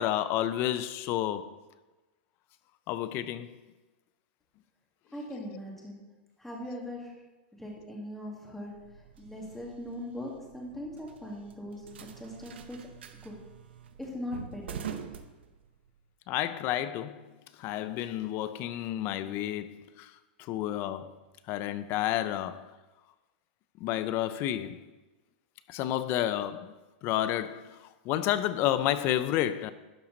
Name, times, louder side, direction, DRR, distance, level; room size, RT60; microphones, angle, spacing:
voice 1, 0.0-1.5 2.9-3.6 16.3-17.3 17.6-20.1 20.4-21.2 21.5-22.7 23.8-24.8 25.7-26.8 27.0-29.7, left 12 dB, 40° left, 0.6 m, -30 dB
voice 2, 5.1-6.0 6.4-7.1 7.5-8.7 9.2-11.9 12.2-12.8 13.1-13.4 14.0-14.9, left 1 dB, 5° left, 2.2 m, -40 dB
sound 1, 8.7-16.0, right 8 dB, 85° right, 0.8 m, -46 dB
11.5 x 5.7 x 4.0 m
hypercardioid pair, 130°, 6 cm